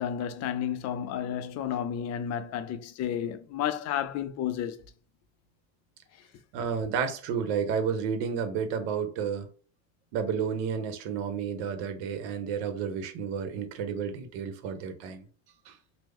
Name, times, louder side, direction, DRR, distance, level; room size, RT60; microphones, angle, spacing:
voice 1, 0.0-4.8, left 9 dB, 50° left, 0.5 m, -31 dB
voice 2, 6.5-9.5 10.1-15.2 15.7-15.8, right 7 dB, 80° right, 0.9 m, -31 dB
3.0 x 2.0 x 3.5 m
supercardioid pair, 115°, 35 cm